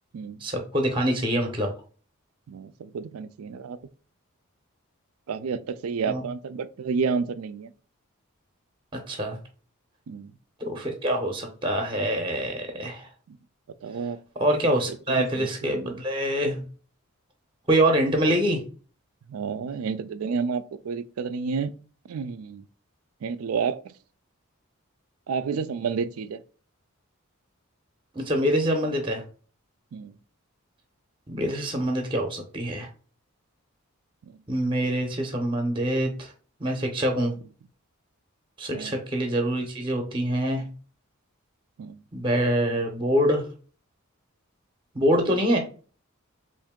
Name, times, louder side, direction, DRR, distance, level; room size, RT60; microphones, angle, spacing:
voice 1, 0.4-1.7 6.1-6.2 9.1-9.4 10.6-13.1 14.4-16.6 17.7-18.6 28.2-29.2 31.3-32.9 34.5-36.3 36.6-37.3 38.6-40.6 42.1-43.4 44.9-45.6, right 1 dB, 25° right, 0.6 m, -25 dB
voice 2, 2.5-3.8 5.3-7.7 10.1-10.3 13.3-13.4 13.8-14.2 14.9-16.0 19.3-21.7 22.1-22.6 23.2-23.9 25.3-26.4 29.9-30.1 34.3-34.4 38.7-39.0 41.8-42.0, right 5 dB, 80° right, 0.4 m, -30 dB
3.6 x 2.6 x 3.6 m
head